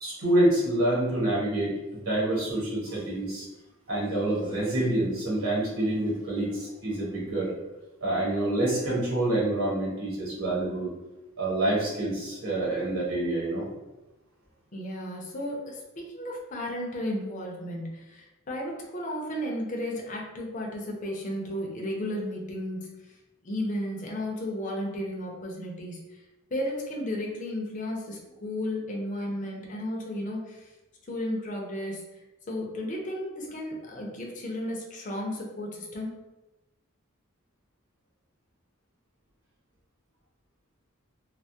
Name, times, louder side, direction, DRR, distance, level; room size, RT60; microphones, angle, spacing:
voice 1, 0.0-3.5 3.9-7.5 8.0-10.9 11.4-13.7, right 1 dB, 90° right, -6 dB, 1.3 m, -27 dB
voice 2, 14.7-22.9 23.4-26.0 26.5-30.7 31.1-32.0 32.5-36.1, left 1 dB, 40° left, -1 dB, 0.6 m, -33 dB
3.3 x 2.0 x 2.7 m, 1.0 s
head